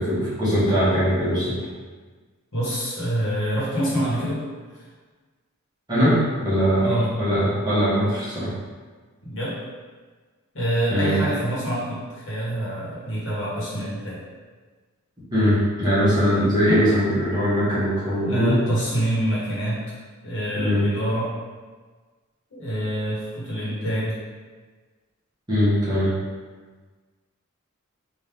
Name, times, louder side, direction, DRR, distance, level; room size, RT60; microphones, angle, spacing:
voice 1, 0.0-1.6 5.9-8.5 10.9-11.2 15.3-18.6 20.6-20.9 23.7-23.9 25.5-26.1, equal, 20° right, -11 dB, 1.3 m, -21 dB
voice 2, 2.5-4.4 4.7-4.8 6.8-7.1 9.2-9.6 10.5-14.2 16.6-16.9 18.2-19.8 20.2-21.3 22.5-24.2, right 1 dB, 65° left, -8 dB, 1.4 m, -26 dB
3.5 x 2.7 x 3.4 m, 1.4 s
head